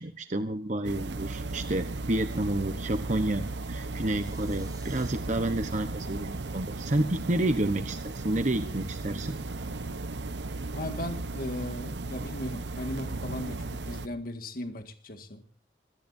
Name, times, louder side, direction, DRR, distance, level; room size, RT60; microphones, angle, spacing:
voice 1, 0.0-9.4, right 1 dB, 45° right, 8 dB, 1.1 m, -30 dB
sound 1, 0.8-14.1, right 2 dB, 85° right, 1.0 m, -36 dB
sound 2, 3.5-5.1, right 4 dB, 20° right, 6.1 m, -55 dB
voice 2, 10.7-15.4, left 1 dB, 55° left, 6 dB, 1.9 m, -37 dB
26.5 x 17.5 x 2.7 m, 0.44 s
head